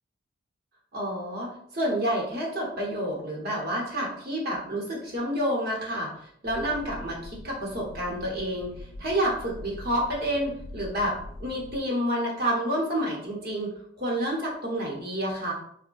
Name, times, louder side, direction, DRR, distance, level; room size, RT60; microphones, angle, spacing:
voice 1, 0.9-8.7 9.0-15.5, equal, 50° right, -3 dB, 0.8 m, -29 dB
sound 1, 6.4-11.8, left 1 dB, 45° left, 0.4 m, -43 dB
3.4 x 2.1 x 2.3 m, 0.68 s
head